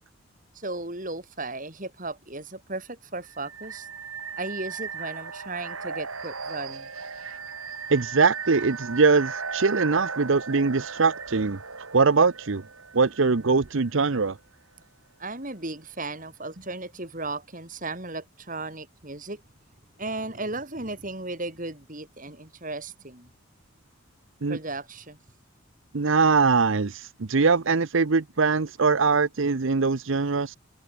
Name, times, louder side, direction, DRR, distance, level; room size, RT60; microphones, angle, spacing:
voice 1, 0.5-3.9 4.4-6.9 15.2-19.4 20.0-23.3 24.5-25.2, right 2 dB, 40° right, 4.6 m, -35 dB
sound 1, 3.3-14.1, right 5 dB, 85° right, 5.6 m, -37 dB
voice 2, 7.9-11.6 11.9-12.6 12.9-14.4 24.4-24.6 25.9-30.6, right 4 dB, 65° right, 0.8 m, -22 dB
head